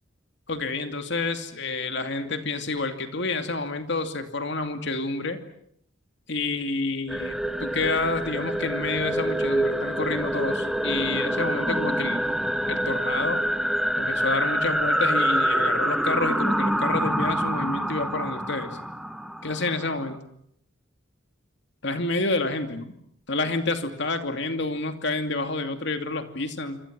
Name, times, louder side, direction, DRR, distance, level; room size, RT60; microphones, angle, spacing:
voice 1, 0.5-5.4 6.3-12.2 12.7-13.4 14.0-18.8 19.4-20.2 21.8-22.9 23.3-26.8, left 3 dB, 60° left, 7 dB, 2.6 m, -29 dB
sound 1, 7.1-20.2, equal, ahead, 1.4 m, -26 dB
27.0 x 26.0 x 7.6 m, 0.70 s
head